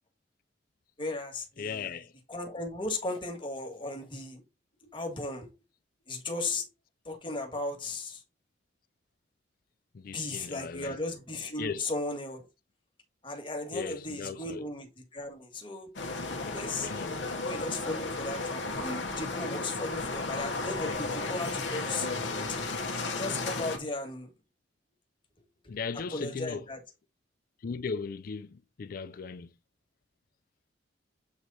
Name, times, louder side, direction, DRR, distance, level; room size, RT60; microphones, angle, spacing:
voice 1, 1.0-1.9 2.3-4.4 4.8-5.5 6.1-6.7 7.0-8.2 10.0-12.5 13.2-14.9 15.1-15.9 16.4-22.1 23.2-24.3 26.1-26.8, left 2 dB, 25° left, 1.6 m, -36 dB
voice 2, 1.6-2.1 9.9-11.0 11.6-11.9 13.7-14.7 16.8-17.2 25.7-26.7 27.6-29.5, left 5 dB, 50° left, 0.4 m, -37 dB
sound 1, 16.0-23.8, left 3 dB, 85° left, 1.3 m, -34 dB
8.1 x 3.1 x 4.1 m
head